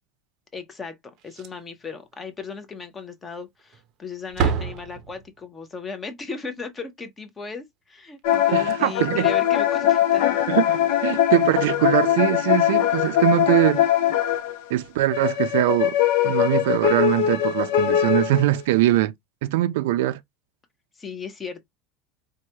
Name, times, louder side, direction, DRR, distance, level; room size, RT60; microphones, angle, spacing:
voice 1, 0.5-1.0 1.2-10.4 21.0-21.6, left 5 dB, 15° left, 0.6 m, -36 dB
Slam, 1.2-1.8 2.1-2.2 2.7-2.8 3.6-3.9 4.2-5.5 8.2-8.3 8.5-8.7 10.3-10.4, right 6 dB, 35° right, 0.6 m, -29 dB
sound 1, 8.2-14.6 15.1-18.6, left 11 dB, 65° left, 0.5 m, -21 dB
voice 2, 8.5-9.3 10.5-13.9 14.7-16.0 16.2-19.1 19.4-20.2, right 15 dB, 80° right, 0.4 m, -22 dB
4.7 x 2.2 x 2.7 m
cardioid pair, 180°, 0 cm